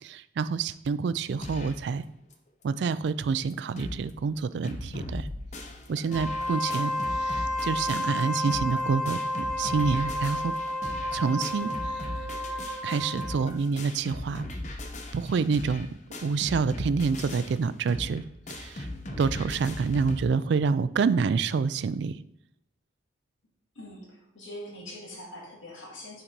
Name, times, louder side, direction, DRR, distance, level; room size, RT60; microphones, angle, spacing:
voice 1, 0.0-2.0 2.6-5.3 5.9-6.9 7.2-10.5 11.1-12.1 12.8-14.5 15.1-15.9 16.2-18.2 18.5-18.9 19.2-22.2, right 5 dB, 65° right, 15 dB, 0.3 m, -27 dB
sound 1, 1.4-1.9 2.3-2.4 2.6-2.7 3.2-3.3 3.5-4.1 4.4-20.2, left 1 dB, 35° left, 0.7 m, -38 dB
Wind instrument woodwind instrument, 6.1-13.5, left 1 dB, ahead, 1.3 m, -31 dB
voice 2, 23.8-26.2, left 1 dB, 90° left, -3 dB, 2.3 m, -43 dB
5.8 x 4.1 x 5.3 m, 0.80 s
head